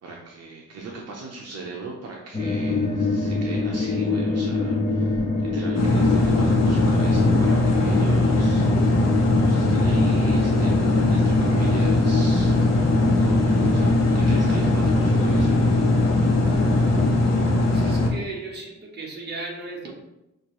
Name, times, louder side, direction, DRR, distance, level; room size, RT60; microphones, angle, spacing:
voice 1, 0.0-5.2 5.5-9.0 9.4-12.6 12.9-15.6, right 4 dB, 60° right, -2 dB, 0.7 m, -38 dB
sound 1, 2.3-17.1, left 3 dB, 20° left, 0.5 m, -25 dB
sound 2, 5.7-18.1, left 2 dB, 60° left, 1.0 m, -20 dB
voice 2, 17.6-19.9, right 3 dB, 35° right, -2 dB, 0.9 m, -35 dB
6.4 x 2.6 x 3.0 m, 0.91 s
wide cardioid pair, 160°, 30 cm